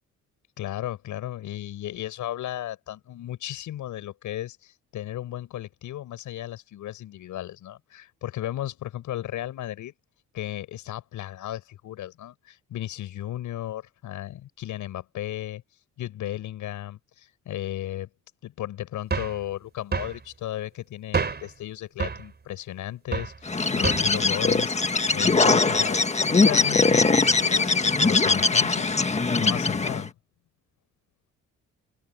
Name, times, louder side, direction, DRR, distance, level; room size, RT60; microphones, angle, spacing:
voice 1, 0.6-9.9 10.3-15.6 16.0-18.1 18.4-24.8 25.1-28.9 29.3-30.1, left 13 dB, 80° left, 6.7 m, -35 dB
sound 1, 19.1-19.4 19.9-20.2 21.1-21.5 22.0-22.3 23.1-23.4 23.8-24.2, right 5 dB, 35° right, 4.9 m, -28 dB
Bird, 23.5-30.1, left 3 dB, 20° left, 1.6 m, -21 dB
open air
cardioid pair, 90°, 30 cm